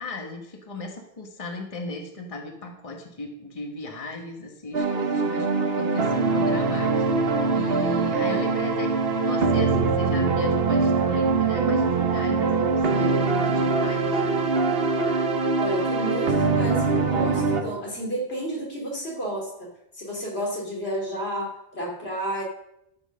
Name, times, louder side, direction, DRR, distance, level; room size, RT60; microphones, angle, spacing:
voice 1, 0.0-7.2 7.5-14.2, left 2 dB, 35° left, 2 dB, 1.4 m, -36 dB
sound 1, 4.7-17.6, right 4 dB, 70° right, 1.3 m, -23 dB
voice 2, 15.6-19.7 19.9-22.4, right 1 dB, 80° left, -2 dB, 3.2 m, -31 dB
13.0 x 6.3 x 6.3 m, 0.83 s
omnidirectional pair, 1.0 m